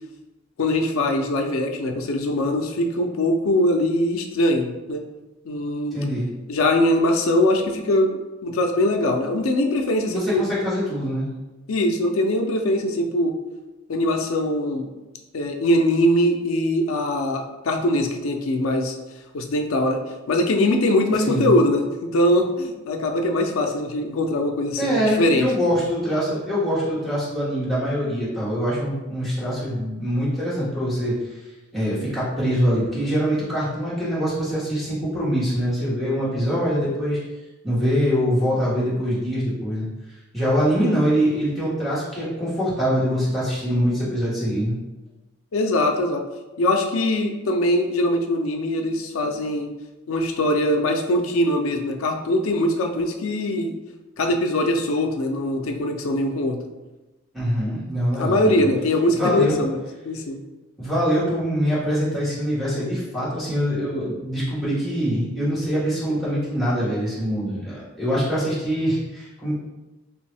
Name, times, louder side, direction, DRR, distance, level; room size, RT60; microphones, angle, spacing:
voice 1, 0.6-5.0 5.5-6.0 6.5-10.4 11.7-13.3 13.9-14.9 15.3-19.0 19.3-20.0 20.3-25.5 45.5-46.2 46.6-49.7 50.1-53.8 54.2-56.6 58.2-60.4, left 1 dB, 85° left, 4 dB, 0.4 m, -22 dB
voice 2, 5.9-6.3 10.1-11.3 21.2-21.5 24.8-31.2 31.7-37.2 37.6-39.9 40.3-44.7 57.3-58.7 59.1-59.6 60.8-69.6, equal, ahead, -11 dB, 1.2 m, -24 dB
3.0 x 2.6 x 3.3 m, 1.1 s
head